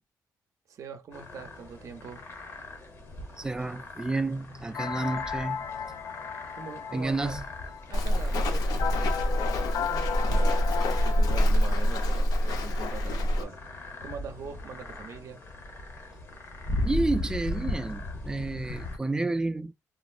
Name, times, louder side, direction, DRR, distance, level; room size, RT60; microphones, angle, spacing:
voice 1, 0.7-2.2 6.5-7.4 7.9-13.6 14.0-15.4, right 6 dB, 55° right, 0.6 m, -42 dB
sound 1, 1.1-19.0, left 2 dB, 45° left, 0.9 m, -39 dB
voice 2, 3.4-5.7 6.9-7.4 16.8-19.7, right 2 dB, 10° right, 0.3 m, -30 dB
sound 2, 4.7-11.4, left 7 dB, 60° left, 0.4 m, -35 dB
Walk footsteps, 7.9-13.4, equal, 85° left, 0.7 m, -25 dB
3.7 x 2.0 x 2.4 m
wide cardioid pair, 155°, 6 cm